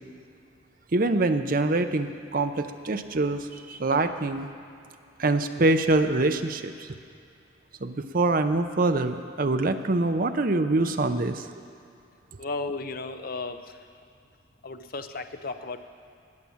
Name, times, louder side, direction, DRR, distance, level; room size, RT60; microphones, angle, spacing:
voice 1, 0.9-4.5 5.2-6.9 7.8-11.5, right 2 dB, 45° right, 8 dB, 0.6 m, -25 dB
voice 2, 12.4-13.9 14.6-15.8, left 3 dB, 45° left, 8 dB, 0.7 m, -34 dB
19.0 x 7.4 x 7.2 m, 2.5 s
head